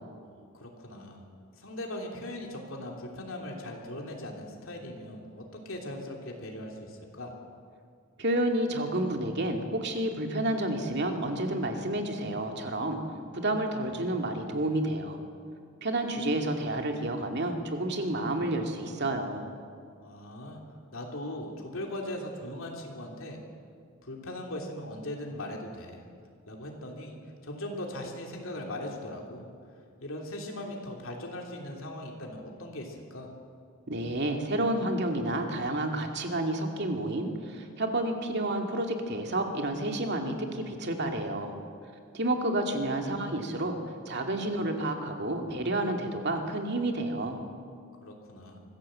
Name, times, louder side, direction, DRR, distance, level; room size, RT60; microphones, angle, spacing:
voice 1, 0.2-1.2 1.6-7.3 20.0-20.6 20.9-23.4 24.0-26.0 26.5-27.1 27.4-29.5 30.0-33.3 48.0-48.6, left 1 dB, 65° left, 0 dB, 3.0 m, -39 dB
voice 2, 8.2-13.0 13.3-15.2 15.8-19.5 33.9-41.5 42.1-43.8 44.1-47.4, right 1 dB, 50° right, 3 dB, 2.4 m, -30 dB
25.0 x 15.5 x 7.7 m, 2.2 s
head